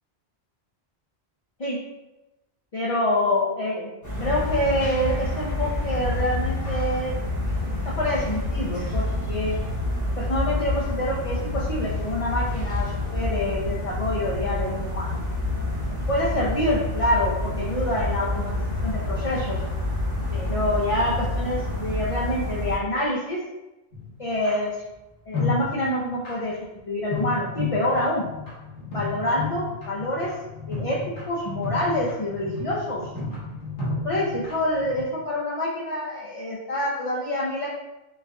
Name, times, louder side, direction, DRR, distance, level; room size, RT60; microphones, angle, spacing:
voice 1, 2.7-7.2 8.0-9.6 10.2-15.2 16.1-18.5 18.8-19.6 20.3-23.4 24.2-24.8 25.3-26.6 26.9-28.3 28.9-30.3 30.7-31.0 31.3-33.1 34.0-37.7, left 1 dB, 45° left, -6 dB, 0.5 m, -26 dB
sound 1, 4.0-22.8, left 1 dB, 20° left, 0.8 m, -28 dB
sound 2, 23.9-24.5 25.3-26.4 27.1-35.0, left 3 dB, 90° left, 1.5 m, -32 dB
4.2 x 2.3 x 3.4 m, 1.0 s
omnidirectional pair, 1.1 m